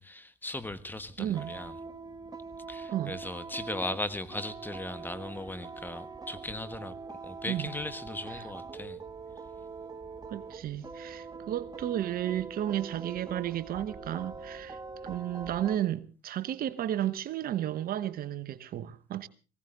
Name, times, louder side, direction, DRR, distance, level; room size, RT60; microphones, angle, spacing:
voice 1, 0.0-1.7 2.7-6.9 7.2-9.0, left 2 dB, 10° left, 1.4 m, -38 dB
sound 1, 0.6-15.8, right 4 dB, 20° right, 1.4 m, -43 dB
voice 2, 1.2-1.6 2.9-3.2 7.5-7.7 10.3-14.8 15.0-19.3, right 12 dB, 45° right, 1.0 m, -33 dB
19.5 x 16.5 x 3.9 m
supercardioid pair, 90°, 21 cm